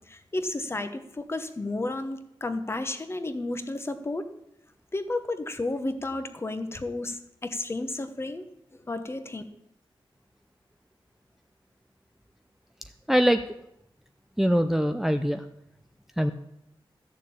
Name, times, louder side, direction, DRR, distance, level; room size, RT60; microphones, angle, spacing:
voice 1, 0.1-4.3 4.9-8.4 8.9-9.4, left 2 dB, 25° left, 9 dB, 1.1 m, -32 dB
voice 2, 13.1-13.4 14.4-15.4 16.2-16.3, equal, 5° right, 7 dB, 0.5 m, -22 dB
14.0 x 6.7 x 8.6 m, 0.80 s
wide cardioid pair, 150°, 9 cm